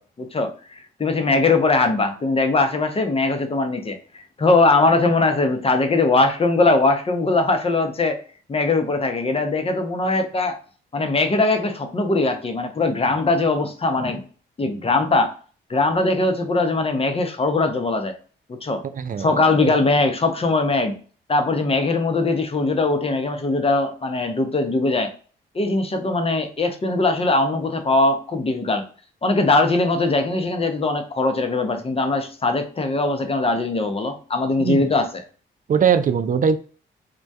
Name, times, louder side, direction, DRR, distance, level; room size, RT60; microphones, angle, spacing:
voice 1, 0.2-8.2 8.5-10.6 10.9-14.2 14.6-15.3 15.7-18.1 18.6-18.8 19.2-21.0 21.3-25.1 25.5-28.8 29.2-35.0, left 3 dB, 25° left, 6 dB, 0.6 m, -21 dB
voice 2, 18.9-19.7 34.6-34.8 35.7-36.6, right 7 dB, 40° right, 10 dB, 0.4 m, -21 dB
2.2 x 2.2 x 2.6 m, 0.40 s
supercardioid pair, 50°, 21 cm